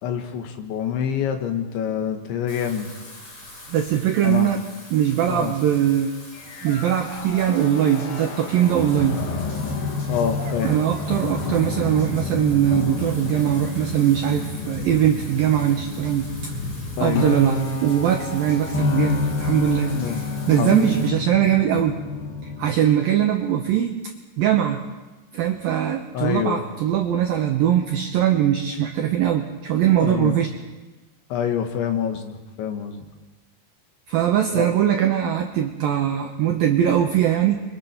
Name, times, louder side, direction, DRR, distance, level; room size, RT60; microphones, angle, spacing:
voice 1, 0.0-2.9 4.2-4.5 5.3-5.6 10.1-10.8 17.0-17.3 19.9-20.2 20.5-21.1 26.1-26.6 30.0-30.4 31.3-33.0 34.5-34.7, left 8 dB, 75° left, 5 dB, 3.8 m, -26 dB
Wind / Rain, 2.5-21.1, left 1 dB, 30° left, 4.6 m, -41 dB
voice 2, 3.7-4.6 4.9-6.1 6.6-9.2 10.6-16.5 17.0-20.2 20.5-22.0 22.4-23.9 24.4-24.8 25.3-30.5 34.1-37.6, right 10 dB, 80° right, 3 dB, 2.1 m, -21 dB
sound 1, 4.9-5.0 6.6-7.6 10.4-12.1, right 3 dB, 50° right, 4.6 m, -42 dB
sound 2, 6.3-22.8, left 3 dB, 60° left, 3.2 m, -29 dB
29.5 x 24.0 x 4.5 m, 1.2 s
omnidirectional pair, 5.5 m